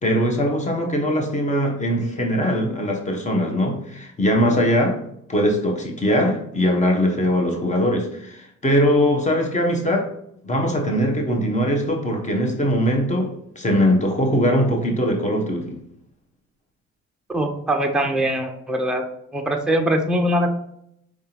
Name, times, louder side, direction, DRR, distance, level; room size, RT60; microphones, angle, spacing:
voice 1, 0.0-5.0 5.3-10.1 10.4-15.8, equal, 25° left, 1.2 m, -21 dB
voice 2, 17.3-19.0 19.3-20.5, right 1 dB, 5° right, 0.6 m, -22 dB
4.8 x 3.5 x 2.9 m
cardioid pair, 90°, 30 cm